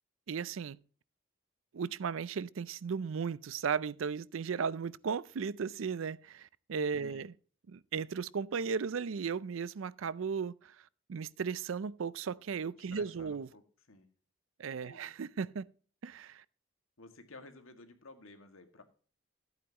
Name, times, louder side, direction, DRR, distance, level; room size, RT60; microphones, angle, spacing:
voice 1, 0.3-0.8 1.7-7.3 7.7-10.8 11.1-13.5 14.6-15.7 16.0-16.4, right 6 dB, 75° right, 0.4 m, -36 dB
voice 2, 12.8-13.6 13.9-14.1 14.7-15.1 17.0-18.8, left 2 dB, 85° left, 1.9 m, -54 dB
14.5 x 8.9 x 2.9 m
head